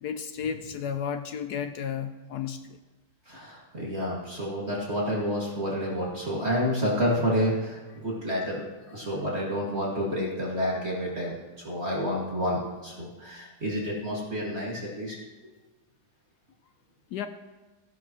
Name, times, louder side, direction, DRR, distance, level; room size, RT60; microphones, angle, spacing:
voice 1, 0.0-2.8 17.1-17.3, left 7 dB, 70° left, 8 dB, 1.0 m, -33 dB
voice 2, 3.3-11.3 11.6-15.1, equal, 35° right, -5 dB, 2.2 m, -29 dB
16.0 x 11.0 x 3.0 m, 1.2 s
omnidirectional pair, 2.1 m